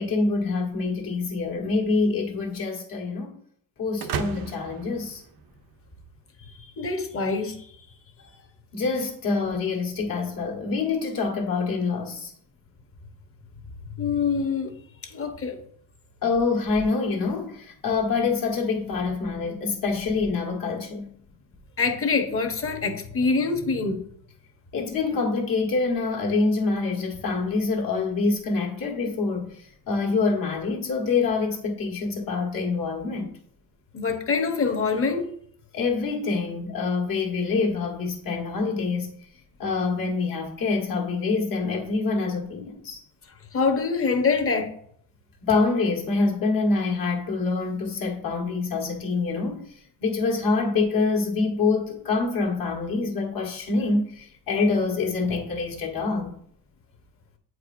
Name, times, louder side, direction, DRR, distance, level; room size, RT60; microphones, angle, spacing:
voice 1, 0.0-3.4 3.8-5.2 8.7-12.3 16.2-21.1 24.7-33.3 35.7-39.2 39.6-43.0 45.4-56.3, left 4 dB, 65° left, 1.6 m, -26 dB
sound 1, 4.0-5.9, right 7 dB, 70° right, 0.6 m, -34 dB
voice 2, 6.8-7.7 14.0-14.7 15.0-15.6 21.8-24.0 33.9-35.3 43.5-44.7, left 4 dB, 40° left, 1.0 m, -25 dB
8.4 x 4.8 x 2.5 m
cardioid pair, 115°, 36 cm